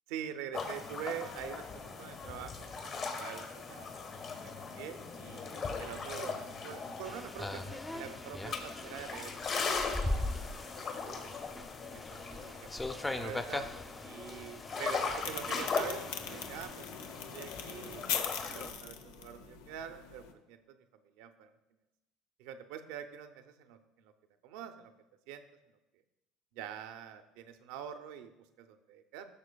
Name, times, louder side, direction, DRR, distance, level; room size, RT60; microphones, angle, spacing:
voice 1, 0.1-3.9 4.4-9.7 10.0-11.2 11.9-12.7 13.0-13.7 14.0-16.0 16.3-16.9 17.3-20.8 21.2-21.5 22.4-24.1 24.4-24.9 25.3-25.4 26.5-28.3 28.6-29.3, right 9 dB, 75° right, 9 dB, 0.6 m, -45 dB
sound 1, 0.5-18.7, left 4 dB, 50° left, 1.6 m, -39 dB
sound 2, 7.0-16.7, left 1 dB, 10° left, 0.6 m, -40 dB
sound 3, 15.2-20.3, left 7 dB, 85° left, 0.7 m, -41 dB
14.0 x 6.3 x 2.3 m, 0.97 s
supercardioid pair, 85°, 0 cm